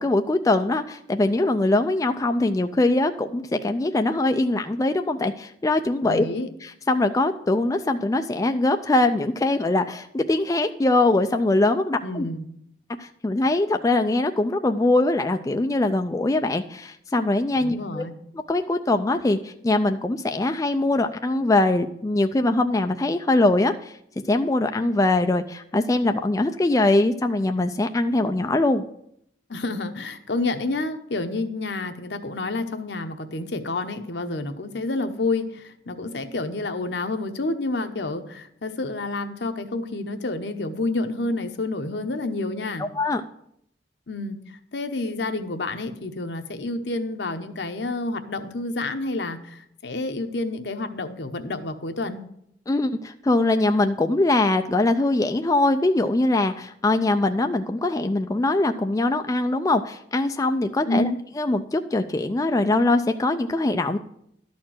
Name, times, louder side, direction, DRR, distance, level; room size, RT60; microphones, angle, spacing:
voice 1, 0.0-6.2 6.6-12.3 13.0-18.1 18.5-23.9 24.3-28.8 42.8-43.2 52.7-61.1 61.4-64.0, left 2 dB, 20° left, 6 dB, 0.4 m, -22 dB
voice 2, 6.0-6.5 12.0-12.4 17.6-18.1 29.5-42.8 44.1-52.2 60.9-61.2, left 2 dB, 70° left, 8 dB, 0.9 m, -29 dB
12.0 x 4.4 x 7.5 m, 0.73 s
head